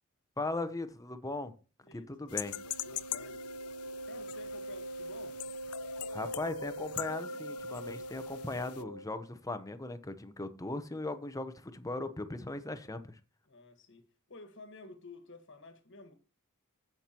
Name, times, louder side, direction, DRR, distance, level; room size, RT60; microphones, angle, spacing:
voice 1, 0.4-1.5 1.9-2.6 6.1-13.2, left 2 dB, 15° left, 0.8 m, -38 dB
Wind instrument woodwind instrument, 2.2-9.2, right 1 dB, 85° right, 1.1 m, -42 dB
sound 1, 2.3-8.8, left 14 dB, 90° left, 0.5 m, -43 dB
voice 2, 2.8-3.4 4.0-5.4 13.5-16.1, left 2 dB, 60° left, 1.5 m, -52 dB
15.5 x 6.0 x 2.9 m
head